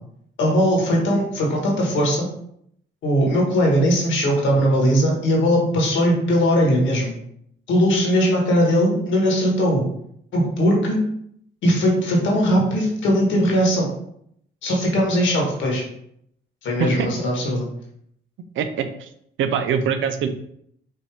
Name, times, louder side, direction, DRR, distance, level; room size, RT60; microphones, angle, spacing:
voice 1, 0.4-2.3 3.0-7.1 7.7-9.9 10.3-11.0 11.6-13.9 14.6-15.8 16.6-17.7, equal, 75° left, -1 dB, 1.5 m, -19 dB
voice 2, 18.6-19.1 19.4-20.3, right 7 dB, 80° right, 8 dB, 0.6 m, -23 dB
5.3 x 2.8 x 3.4 m, 0.71 s
cardioid pair, 90°, 20 cm